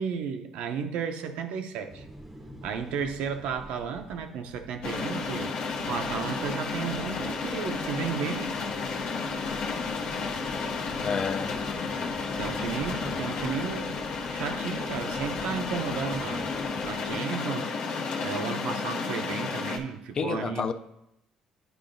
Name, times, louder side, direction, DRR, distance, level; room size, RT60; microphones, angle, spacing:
voice 1, 0.0-2.1 2.6-5.6 5.9-8.5 12.4-14.0 14.3-16.5 16.8-17.7 18.2-20.7, right 6 dB, 80° right, 6 dB, 0.6 m, -33 dB
sound 1, 1.9-17.2, equal, 10° right, 0.6 m, -46 dB
sound 2, 4.8-19.8, left 4 dB, 75° left, 0.7 m, -32 dB
voice 2, 11.0-11.6 20.1-20.7, left 6 dB, 40° left, 9 dB, 0.3 m, -29 dB
10.0 x 4.6 x 2.6 m, 0.84 s
cardioid pair, 115°, 2 cm